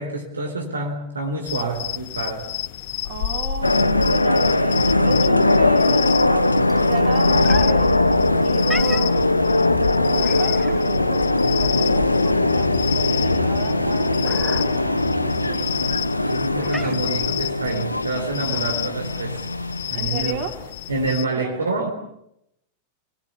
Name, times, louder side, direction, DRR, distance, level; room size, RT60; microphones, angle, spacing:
voice 1, 0.0-2.5 16.2-19.5 19.9-20.4 20.9-21.9, right 3 dB, 75° right, 2 dB, 4.0 m, -27 dB
sound 1, 1.5-21.3, left 14 dB, 50° left, 0.9 m, -31 dB
voice 2, 3.0-7.9 8.4-16.0 19.9-20.6 21.3-21.7, right 5 dB, 45° right, 4 dB, 4.9 m, -34 dB
sound 2, 3.6-20.5, left 2 dB, 85° left, 1.1 m, -20 dB
sound 3, 3.6-19.6, right 1 dB, 10° right, 1.9 m, -39 dB
29.0 x 21.5 x 7.1 m, 0.80 s
figure-of-eight pair, 90°, 0 cm